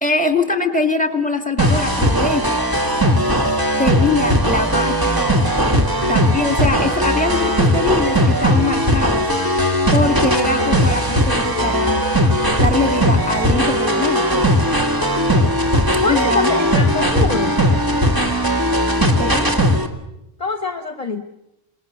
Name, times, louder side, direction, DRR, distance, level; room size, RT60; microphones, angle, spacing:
voice 1, 0.0-2.6 3.8-5.2 6.1-9.6 9.9-12.0 12.6-14.3 16.1-16.6 19.0-19.5, left 3 dB, 10° left, 6 dB, 2.2 m, -22 dB
sound 1, 1.6-19.9, equal, 20° right, 2.0 m, -18 dB
voice 2, 16.0-17.6 20.4-21.2, left 3 dB, 40° left, 7 dB, 1.2 m, -24 dB
26.5 x 21.0 x 6.8 m, 0.87 s
omnidirectional pair, 1.0 m